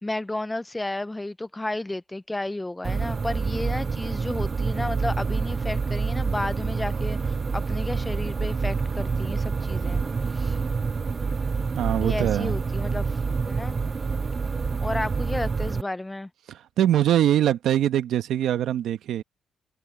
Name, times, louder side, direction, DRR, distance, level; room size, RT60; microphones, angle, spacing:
voice 1, 0.0-10.0 10.3-10.6 12.0-13.2 13.5-13.8 14.8-16.3, left 2 dB, 15° left, 0.6 m, -32 dB
sound 1, 2.8-15.8, right 5 dB, 35° right, 0.5 m, -27 dB
voice 2, 11.8-12.5 16.5-19.2, right 11 dB, 75° right, 1.2 m, -23 dB
cardioid pair, 90°, 0 cm